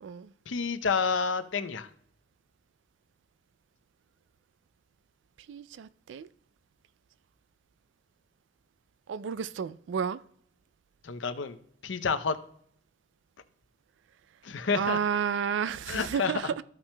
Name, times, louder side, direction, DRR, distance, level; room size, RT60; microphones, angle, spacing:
voice 1, 0.5-1.9 11.0-11.6 11.8-12.4 14.4-15.0 15.9-16.5, left 5 dB, 85° left, 0.6 m, -29 dB
voice 2, 5.5-6.3 9.1-10.2 14.7-16.6, right 7 dB, 75° right, 0.3 m, -31 dB
14.5 x 5.8 x 2.2 m
head